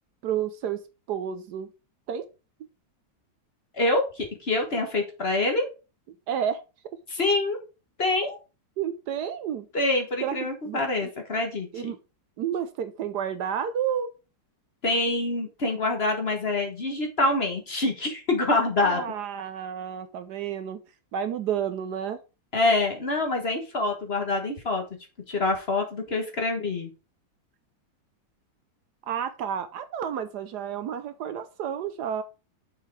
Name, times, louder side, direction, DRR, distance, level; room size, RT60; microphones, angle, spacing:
voice 1, 0.2-0.8 1.1-1.7 2.1-2.3 6.3-6.6 8.8-9.7 10.2-10.4 10.6-11.1 11.7-12.0 12.4-14.1 18.8-20.8 21.1-22.2 29.1-32.2, right 8 dB, 70° right, 11 dB, 1.1 m, -30 dB
voice 2, 3.7-5.7 7.1-7.6 8.0-8.4 9.7-11.9 14.8-19.0 22.5-24.8 25.3-26.9, left 2 dB, 35° left, 3 dB, 1.4 m, -26 dB
6.8 x 4.6 x 4.7 m, 0.31 s
omnidirectional pair, 2.0 m